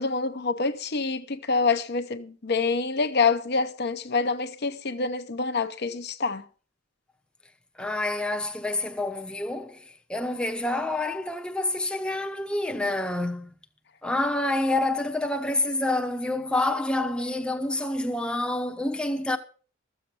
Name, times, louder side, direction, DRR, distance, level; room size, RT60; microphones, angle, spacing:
voice 1, 0.0-6.4, left 4 dB, 50° left, 0.8 m, -26 dB
voice 2, 7.8-9.8 10.1-13.5 14.0-19.4, left 2 dB, 5° left, 0.8 m, -27 dB
13.5 x 7.5 x 6.9 m
head